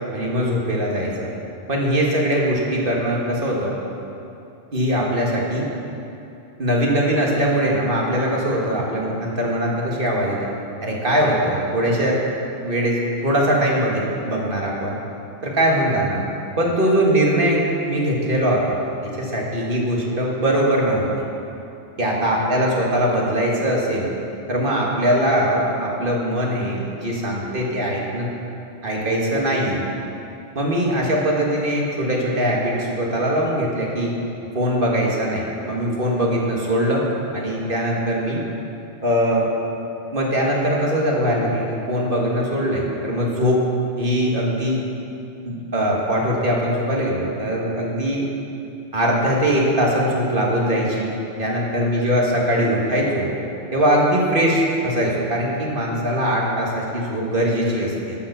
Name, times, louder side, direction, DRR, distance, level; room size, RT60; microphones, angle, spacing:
voice 1, 0.1-1.3 1.7-3.8 4.7-5.7 6.6-10.5 10.8-12.2 12.6-15.0 15.4-16.2 16.6-18.6 19.0-21.1 22.0-24.1 24.5-28.3 28.8-29.8 30.6-34.1 34.5-37.0 37.3-38.4 39.0-39.5 40.1-43.6 44.0-44.8 45.4-48.3 48.9-51.1 51.4-53.3 53.7-58.2, equal, 45° right, -3 dB, 1.8 m, -21 dB
11.5 x 6.7 x 6.7 m, 2.7 s
omnidirectional pair, 1.2 m